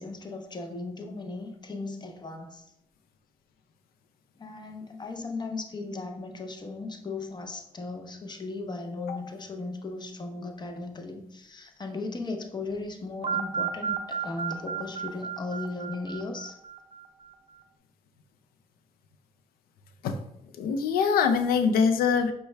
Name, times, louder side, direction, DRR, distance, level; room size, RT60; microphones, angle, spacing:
voice 1, 0.0-2.7 4.4-16.6, left 3 dB, 30° left, 4 dB, 0.7 m, -37 dB
voice 2, 9.0-9.3 20.0-20.2 20.5-22.3, left 6 dB, 85° left, 7 dB, 0.4 m, -24 dB
sound 1, 13.2-17.2, right 7 dB, 40° right, 0.5 m, -33 dB
5.3 x 2.2 x 3.2 m, 0.80 s
supercardioid pair, 60°, 15 cm